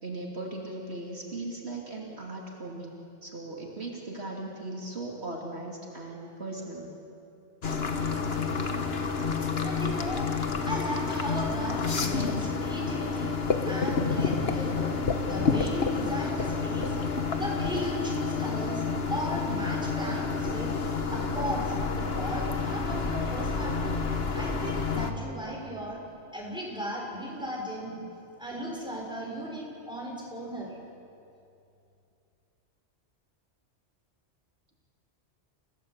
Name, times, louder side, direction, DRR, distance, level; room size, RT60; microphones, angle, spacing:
voice 1, 0.0-6.9 21.4-21.6 22.6-23.5 27.9-28.0, right 2 dB, 65° right, -2 dB, 2.9 m, -39 dB
sound 1, 7.6-25.1, left 4 dB, 60° left, 1.7 m, -29 dB
voice 2, 9.6-10.3 10.6-13.4 13.6-14.9 15.2-17.0 17.4-20.7 21.1-23.9 24.3-26.0 26.3-27.9 28.4-30.7, equal, 5° right, -3 dB, 6.2 m, -36 dB
29.5 x 16.5 x 8.3 m, 2.6 s
omnidirectional pair, 1.2 m